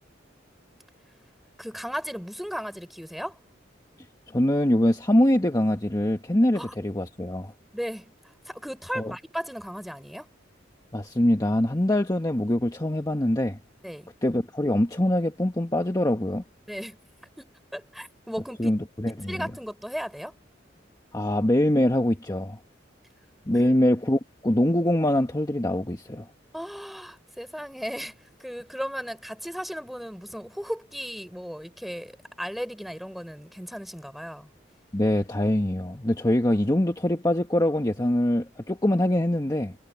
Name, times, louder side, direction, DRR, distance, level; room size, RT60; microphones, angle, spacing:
voice 1, 1.6-3.4 6.5-6.7 7.7-8.1 8.4-10.3 13.8-14.1 16.7-17.0 17.4-18.8 19.1-20.4 23.5-23.7 26.5-34.5, equal, ahead, 4.0 m, -36 dB
voice 2, 4.3-7.5 9.0-9.1 10.9-13.6 14.2-16.4 18.6-18.8 19.3-19.5 21.1-22.6 23.5-26.3 34.9-39.7, left 1 dB, 20° left, 1.3 m, -23 dB
head